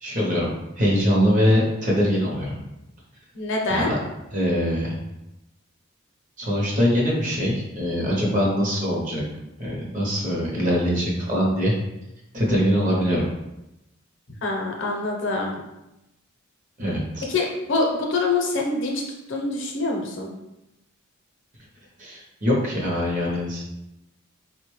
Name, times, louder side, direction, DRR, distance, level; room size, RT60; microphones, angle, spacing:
voice 1, 0.0-2.6 3.7-3.8 4.3-4.9 6.4-9.2 9.6-11.7 12.3-13.3 16.8-17.3 22.0-23.6, equal, 35° right, -3 dB, 0.7 m, -23 dB
voice 2, 3.3-3.9 14.4-15.5 17.3-19.0 19.3-20.3, left 3 dB, 60° left, 0 dB, 0.6 m, -25 dB
3.7 x 2.1 x 3.1 m, 0.93 s
head